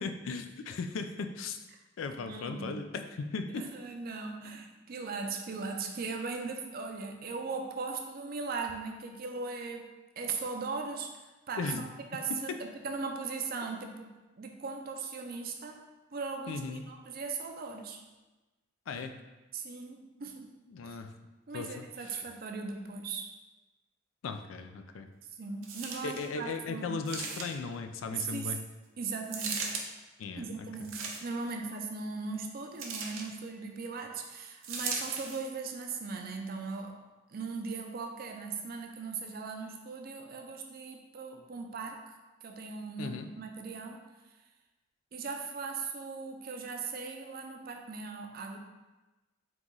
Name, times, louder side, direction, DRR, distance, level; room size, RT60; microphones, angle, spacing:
voice 1, 0.0-1.6 2.0-3.6 11.6-11.8 12.3-12.6 16.5-16.8 18.9-19.1 20.7-21.1 21.5-22.2 24.2-25.1 26.0-28.6 30.2-30.9 43.0-43.3, left 4 dB, 80° left, 7 dB, 0.4 m, -37 dB
voice 2, 2.2-2.8 3.5-9.9 10.2-15.8 16.1-18.0 19.5-20.5 20.9-21.0 21.5-23.3 25.4-27.0 28.1-28.6 29.0-29.7 30.4-37.0 37.3-44.0 45.1-48.6, right 4 dB, 45° right, 4 dB, 0.4 m, -39 dB
sound 1, 25.6-26.3 27.0-27.7 29.3-29.8 30.8-31.5 32.8-33.3 34.6-35.5 36.2-36.3, right 4 dB, 85° right, 0.6 m, -37 dB
3.9 x 2.9 x 3.7 m, 1.1 s
head